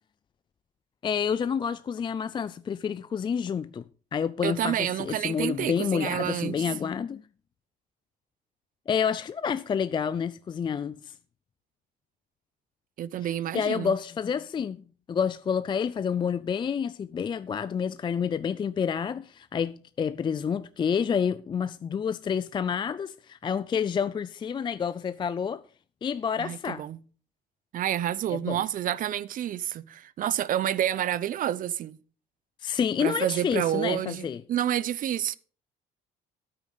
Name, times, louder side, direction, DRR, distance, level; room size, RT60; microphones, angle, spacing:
voice 1, 1.0-3.8 4.1-7.2 8.9-11.1 13.2-25.6 26.0-26.8 28.3-28.6 32.6-34.4, left 7 dB, 30° left, 0.4 m, -29 dB
voice 2, 4.4-6.6 13.0-13.9 26.4-27.0 27.7-32.0 33.0-35.4, right 11 dB, 55° right, 0.6 m, -29 dB
13.0 x 8.7 x 4.0 m
cardioid pair, 110°, 17 cm